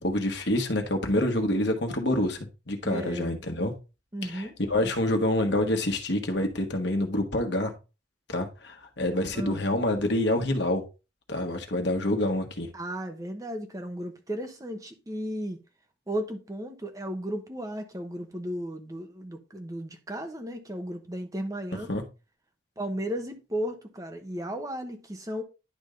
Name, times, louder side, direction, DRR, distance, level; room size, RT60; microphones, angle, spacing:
voice 1, 0.0-3.7 4.2-7.7 8.3-10.8 11.3-12.7 21.7-22.0, left 1 dB, 70° left, 1.3 m, -27 dB
voice 2, 2.8-3.4 4.1-4.6 9.3-9.6 12.7-15.6 16.1-21.9 22.8-25.4, equal, 20° right, 0.8 m, -35 dB
10.5 x 3.6 x 3.8 m
head